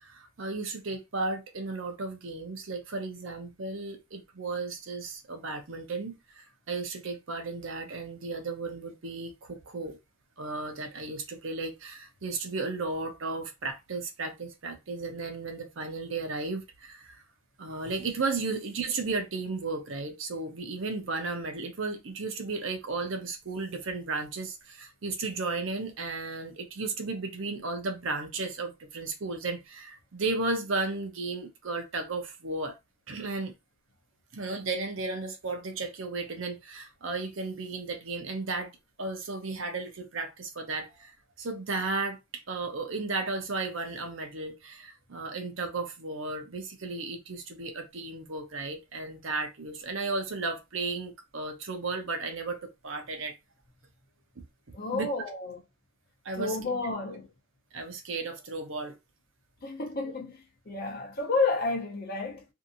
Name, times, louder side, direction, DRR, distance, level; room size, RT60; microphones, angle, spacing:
voice 1, 0.0-10.0 10.4-17.2 17.6-32.7 33.1-33.5 34.3-38.7 39.0-53.4 54.9-55.1 56.2-56.6 57.7-59.0, right 3 dB, 60° right, 0.6 m, -34 dB
voice 2, 54.7-55.6 56.3-57.3 59.6-62.4, left 3 dB, 45° left, 0.7 m, -31 dB
2.7 x 2.5 x 2.6 m
head